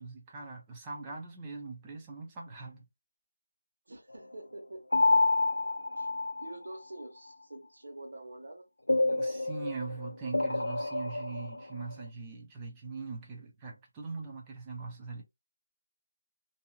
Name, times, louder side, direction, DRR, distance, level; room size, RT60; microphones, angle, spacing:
voice 1, 0.0-2.9 9.1-15.2, right 4 dB, 10° right, 0.4 m, -41 dB
voice 2, 3.9-4.8 6.0-6.1 6.4-8.7, right 1 dB, 45° right, 1.1 m, -46 dB
sound 1, 4.9-6.8 8.9-11.6, left 2 dB, 85° left, 0.5 m, -28 dB
2.6 x 2.2 x 2.7 m
figure-of-eight pair, 175°, 0 cm